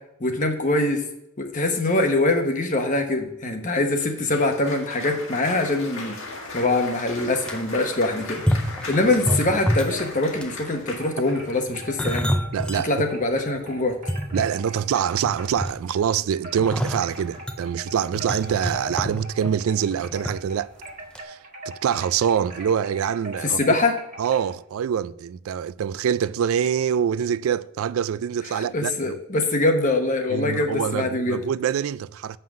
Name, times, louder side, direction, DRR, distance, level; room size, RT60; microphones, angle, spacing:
voice 1, 0.2-1.0 1.4-6.1 6.5-8.4 8.9-12.4 12.8-14.0 23.4-24.0 28.5-31.4, left 2 dB, 35° left, 1.0 m, -23 dB
Cheering / Applause, 4.0-11.7, left 3 dB, 60° left, 1.7 m, -38 dB
sound 1, 7.2-7.6 8.3-10.1 10.4-10.7 11.5-12.8 13.3-13.4 13.9-14.9 15.2-16.0 16.6-20.3 20.6-20.8 21.1-21.2, equal, 5° left, 0.4 m, -27 dB
sound 2, 8.9-16.1 16.4-24.5, right 1 dB, 35° right, 1.5 m, -41 dB
voice 2, 12.5-12.9 14.3-20.7 21.2-21.4 21.7-23.6 24.2-29.2 30.3-32.4, right 8 dB, 70° right, 0.3 m, -25 dB
7.6 x 5.6 x 6.2 m
head